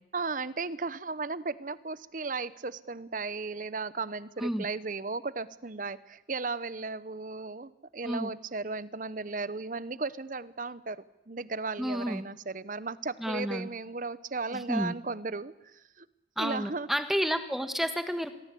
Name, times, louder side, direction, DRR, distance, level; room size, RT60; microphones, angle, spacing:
voice 1, 0.1-11.0 11.3-16.1 16.4-16.9, right 3 dB, 45° right, 17 dB, 0.9 m, -35 dB
voice 2, 11.8-12.2 13.2-13.7 14.5-14.9 16.4-18.3, equal, ahead, 9 dB, 1.6 m, -30 dB
28.5 x 22.5 x 8.4 m, 0.95 s
head